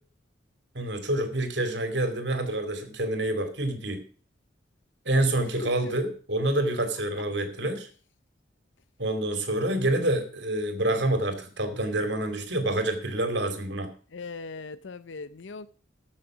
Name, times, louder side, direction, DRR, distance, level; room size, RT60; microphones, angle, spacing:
voice 1, 0.7-4.0 5.1-7.9 9.0-13.9, right 1 dB, 70° right, 2.6 m, -27 dB
voice 2, 14.1-15.7, left 4 dB, 85° left, 0.6 m, -39 dB
14.5 x 6.5 x 6.0 m
head